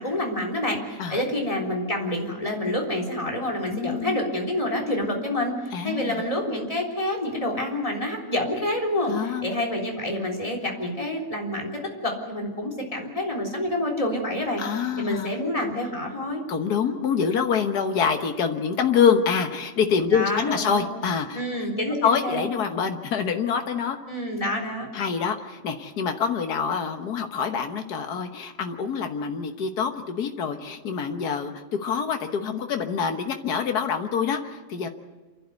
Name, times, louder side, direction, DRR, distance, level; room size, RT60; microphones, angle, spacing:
voice 1, 0.0-11.7 12.0-14.6 15.0-16.4 20.1-20.9 21.3-22.5 24.1-24.9, left 1 dB, 20° left, -1 dB, 3.8 m, -28 dB
voice 2, 3.7-4.2 5.7-6.2 9.1-9.5 14.6-15.4 16.5-21.4 22.0-24.0 24.9-34.9, left 6 dB, 85° left, 5 dB, 1.8 m, -26 dB
27.5 x 12.5 x 9.4 m, 1.3 s
omnidirectional pair, 1.6 m